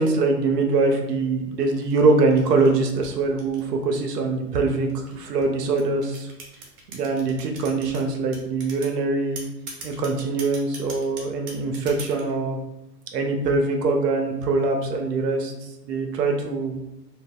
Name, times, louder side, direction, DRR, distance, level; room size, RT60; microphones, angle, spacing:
voice 1, 0.0-6.3 6.9-9.4 9.8-12.6 13.1-15.5 15.8-16.7, right 3 dB, 70° right, 3 dB, 0.6 m, -23 dB
sound 1, 1.7-4.2 4.9-8.0 8.3-8.9 9.4-12.3, right 3 dB, 30° right, 0.8 m, -40 dB
2.4 x 2.1 x 3.4 m, 0.93 s
hypercardioid pair, 115°, 50 cm